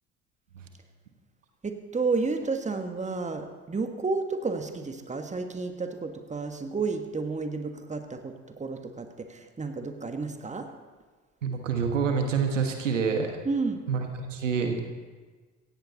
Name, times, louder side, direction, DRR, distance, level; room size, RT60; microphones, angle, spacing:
voice 1, 1.6-10.7 13.4-13.8, right 4 dB, 20° right, 6 dB, 1.7 m, -31 dB
voice 2, 11.4-13.4 13.9-14.8, right 5 dB, 85° right, 4 dB, 1.4 m, -27 dB
17.0 x 15.0 x 4.2 m, 1.4 s
figure-of-eight pair, 55°, 37 cm